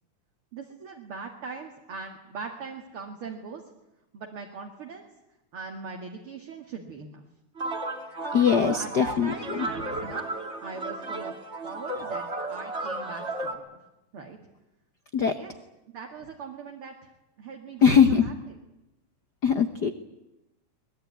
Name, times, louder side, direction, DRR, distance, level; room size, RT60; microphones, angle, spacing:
voice 1, 0.5-3.6 4.1-5.0 5.5-7.2 8.7-10.3 10.6-11.3 11.6-13.7 14.1-14.4 15.3-15.5 15.9-17.1 17.4-18.3, right 5 dB, 45° right, 2 dB, 2.6 m, -40 dB
sound 1, 7.6-13.5, right 2 dB, 20° right, 2.6 m, -34 dB
voice 2, 8.3-9.7 15.1-15.3 17.8-18.3 19.4-19.9, left 7 dB, 80° left, 9 dB, 0.9 m, -21 dB
23.0 x 21.0 x 9.5 m, 0.95 s
omnidirectional pair, 3.6 m